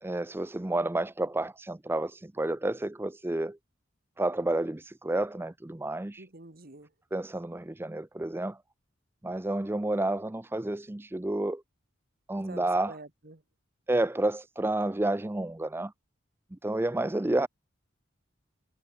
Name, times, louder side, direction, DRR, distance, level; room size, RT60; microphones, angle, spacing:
voice 1, 0.0-3.6 4.2-6.2 7.1-8.6 9.2-11.6 12.3-13.0 13.9-15.9 16.5-17.5, right 2 dB, 10° right, 0.5 m, -30 dB
voice 2, 6.2-6.9 12.4-13.4, right 2 dB, 50° right, 1.9 m, -47 dB
head